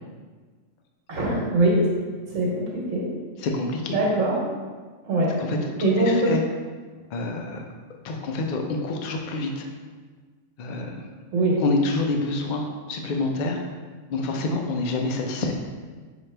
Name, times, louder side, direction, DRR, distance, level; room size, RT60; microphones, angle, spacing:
voice 1, 1.1-1.8 2.3-3.0 3.9-4.3 5.0-5.3 5.8-6.3 11.3-11.6, right 2 dB, 70° right, -4 dB, 1.5 m, -22 dB
voice 2, 3.4-4.0 5.4-6.4 7.1-7.6 8.0-9.7 10.6-11.0 11.6-13.6 14.1-15.6, left 2 dB, 60° left, 2 dB, 0.5 m, -27 dB
5.7 x 2.8 x 3.3 m, 1.4 s
omnidirectional pair, 1.4 m